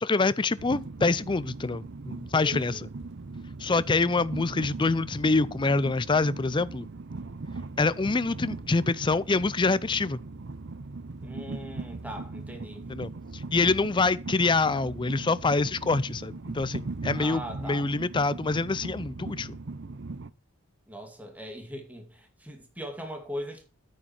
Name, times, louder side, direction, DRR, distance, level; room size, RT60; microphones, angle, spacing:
voice 1, 0.0-2.8 3.6-6.9 7.8-10.2 12.9-19.6, left 3 dB, 20° left, 0.4 m, -26 dB
Train, 0.6-20.3, right 3 dB, 55° right, 0.6 m, -39 dB
voice 2, 2.3-2.8 11.2-12.8 17.1-17.9 20.9-23.6, equal, 5° right, 2.3 m, -40 dB
9.4 x 8.8 x 4.4 m
head